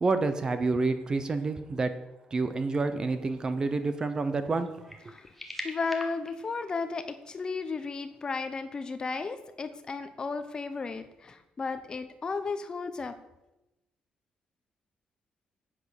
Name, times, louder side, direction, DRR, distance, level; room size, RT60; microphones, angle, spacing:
voice 1, 0.0-1.9 2.3-4.7, right 3 dB, 25° right, 10 dB, 0.9 m, -28 dB
sound 1, 3.6-3.7 4.5-7.0, left 1 dB, ahead, 1.5 m, -42 dB
voice 2, 5.6-13.1, left 4 dB, 30° left, 10 dB, 0.9 m, -34 dB
9.9 x 8.8 x 7.2 m, 0.94 s
cardioid pair, 165°, 3 cm